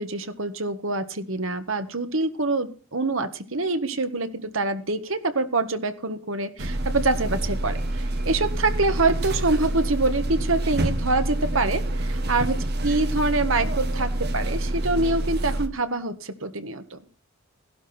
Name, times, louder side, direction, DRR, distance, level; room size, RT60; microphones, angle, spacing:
voice 1, 0.0-12.6 12.8-17.0, right 3 dB, 70° right, 9 dB, 1.6 m, -25 dB
sound 1, 6.6-15.7, right 1 dB, 50° right, 1.6 m, -27 dB
16.0 x 12.0 x 4.4 m, 0.37 s
head